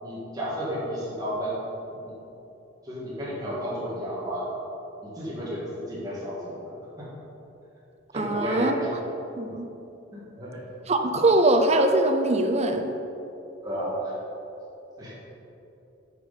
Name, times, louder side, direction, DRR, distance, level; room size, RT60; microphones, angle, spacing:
voice 1, 0.0-1.5 1.9-2.0 2.8-4.5 5.0-7.1 8.1-8.9 10.1-10.6 13.6-14.1 15.0-15.1, equal, 20° right, -8 dB, 1.8 m, -32 dB
voice 2, 8.1-8.8 9.4-9.7 10.9-12.9, right 2 dB, 35° right, 5 dB, 0.6 m, -22 dB
9.2 x 4.5 x 5.0 m, 2.9 s
head